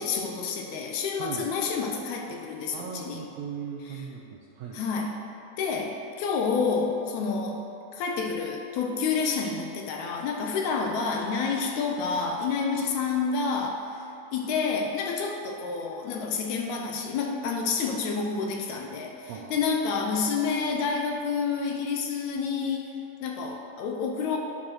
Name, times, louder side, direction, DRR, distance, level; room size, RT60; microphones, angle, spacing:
voice 1, 0.0-3.2 3.9-4.0 4.7-5.2 5.6-7.6 7.9-14.0 14.3-22.9 23.2-24.4, left 5 dB, 75° left, 2 dB, 1.9 m, -29 dB
voice 2, 1.2-1.5 2.7-4.8 19.3-19.6, right 7 dB, 80° right, -1 dB, 1.6 m, -38 dB
9.7 x 4.3 x 6.2 m, 2.7 s
omnidirectional pair, 3.6 m